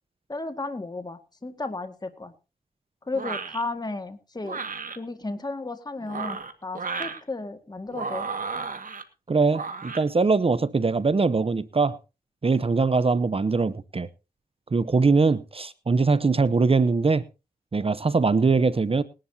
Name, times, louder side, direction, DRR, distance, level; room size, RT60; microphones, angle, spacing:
voice 1, 0.3-2.3 3.1-4.6 5.0-8.3, left 3 dB, 25° left, 1.8 m, -34 dB
sound 1, 3.1-3.6 4.4-5.0 6.0-7.2 7.9-9.0 9.5-10.0, right 4 dB, 60° right, 1.8 m, -33 dB
voice 2, 9.3-12.0 12.4-14.1 14.7-17.2 17.7-19.0, right 4 dB, 40° right, 0.8 m, -22 dB
20.5 x 11.5 x 2.8 m
cardioid pair, 65°, 15 cm